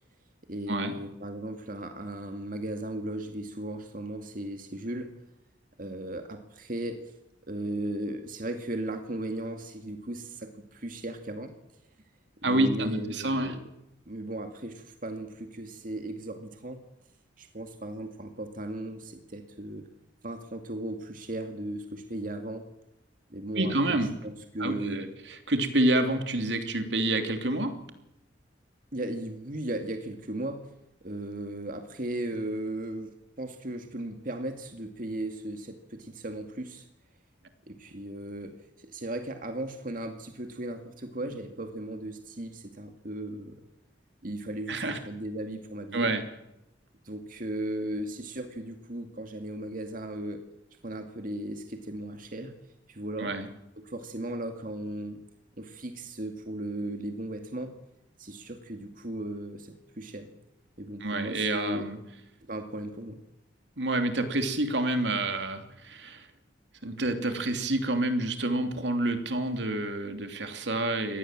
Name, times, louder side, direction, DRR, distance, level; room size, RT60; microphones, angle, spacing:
voice 1, 0.5-5.1 5.8-7.0 7.5-11.5 12.4-13.6 14.1-16.8 17.4-19.9 20.2-22.7 23.3-25.0 28.9-30.7 31.0-36.9 37.7-43.6 44.2-46.1 47.0-50.4 50.8-52.6 52.9-53.3 53.8-55.2 55.6-57.7 58.2-60.3 60.8-61.8 62.5-63.2, right 1 dB, 50° right, 5 dB, 2.2 m, -36 dB
voice 2, 12.4-13.5 23.5-24.1 24.6-27.7 44.7-45.0 45.9-46.2 53.2-53.5 61.0-62.0 63.8-66.3 66.8-71.2, right 2 dB, 75° right, 7 dB, 2.9 m, -28 dB
25.0 x 19.0 x 7.5 m, 0.85 s
head